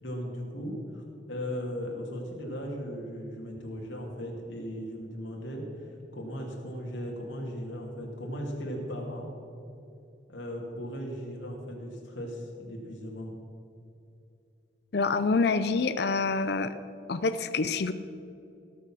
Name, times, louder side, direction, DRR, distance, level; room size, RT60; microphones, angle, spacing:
voice 1, 0.0-9.3 10.3-13.4, equal, 80° left, -1 dB, 2.7 m, -37 dB
voice 2, 14.9-16.8 17.1-17.9, left 4 dB, 55° left, 11 dB, 0.5 m, -26 dB
17.5 x 6.7 x 6.3 m, 2.7 s
head